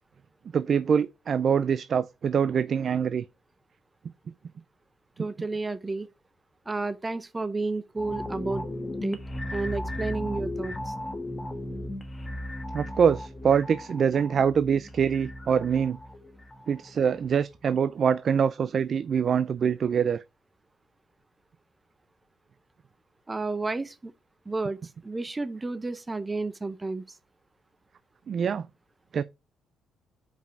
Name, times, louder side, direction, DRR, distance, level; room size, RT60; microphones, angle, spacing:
voice 1, 0.5-3.2 12.7-16.0 16.7-20.2 28.3-28.7 29.1-29.2, right 7 dB, 50° right, 0.3 m, -24 dB
voice 2, 5.2-6.1 6.7-8.6 9.0-9.2 9.5-10.9 23.3-24.1 24.5-27.2, right 3 dB, 20° right, 0.7 m, -31 dB
sound 1, 8.0-17.3 17.6-17.8, left 1 dB, 20° left, 1.2 m, -36 dB
5.2 x 5.1 x 4.6 m
cardioid pair, 95°, 0 cm